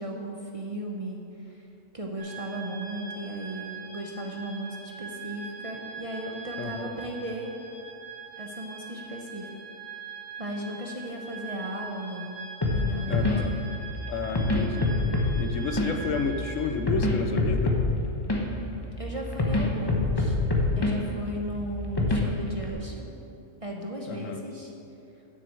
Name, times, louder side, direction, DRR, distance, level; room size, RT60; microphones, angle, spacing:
voice 1, 0.0-1.7 1.9-7.5 8.4-9.5 10.4-12.3 12.7-13.3 19.0-20.4 20.8-23.1 23.6-24.7, right 1 dB, 30° right, 0 dB, 0.7 m, -36 dB
sound 1, 2.2-16.7, right 6 dB, 50° left, 2.7 m, -42 dB
voice 2, 6.6-7.0 13.1-13.5 14.1-14.9 15.4-17.8 24.1-24.4, left 5 dB, 75° left, 7 dB, 1.0 m, -31 dB
sound 2, 12.6-22.7, left 2 dB, 20° left, 0.9 m, -27 dB
7.5 x 6.5 x 7.6 m, 2.9 s
omnidirectional pair, 1.4 m